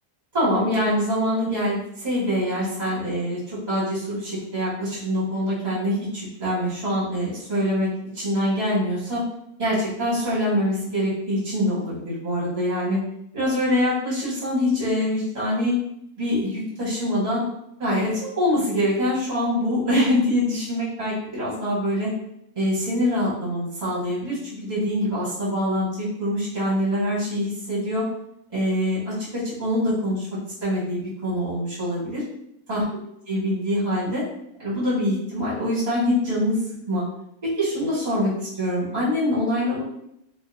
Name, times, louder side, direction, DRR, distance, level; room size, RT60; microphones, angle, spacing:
voice 1, 0.3-9.2 9.6-13.0 13.3-15.8 16.2-17.4 17.8-22.1 22.5-28.1 28.5-32.2 32.7-32.8 33.3-34.2 34.6-36.6 36.9-37.0 37.4-39.8, equal, 35° right, -8 dB, 0.8 m, -24 dB
2.3 x 2.2 x 3.0 m, 0.78 s
omnidirectional pair, 1.6 m